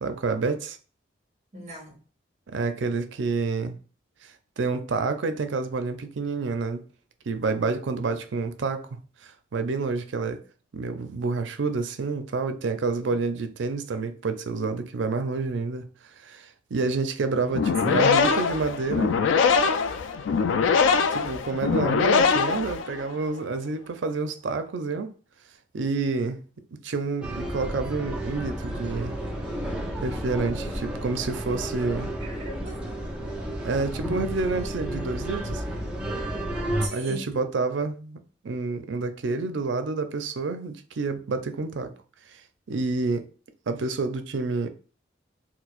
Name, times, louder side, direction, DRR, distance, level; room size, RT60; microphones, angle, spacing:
voice 1, 0.0-0.8 2.5-3.8 4.2-4.3 4.6-6.8 7.3-10.4 10.7-15.9 16.2-19.1 21.1-25.1 25.7-26.4 26.8-29.2 30.0-32.1 33.6-35.6 36.9-38.2 38.4-41.9 42.7-43.2 43.7-44.7, right 4 dB, 80° right, 0.5 m, -28 dB
voice 2, 1.5-2.0 17.5-18.4 32.2-32.8 36.8-37.3, right 1 dB, 35° right, 1.4 m, -39 dB
sound 1, 17.5-23.2, left 5 dB, 90° left, 0.3 m, -22 dB
sound 2, 27.2-36.9, right 1 dB, 5° right, 0.6 m, -32 dB
4.5 x 2.0 x 2.4 m
head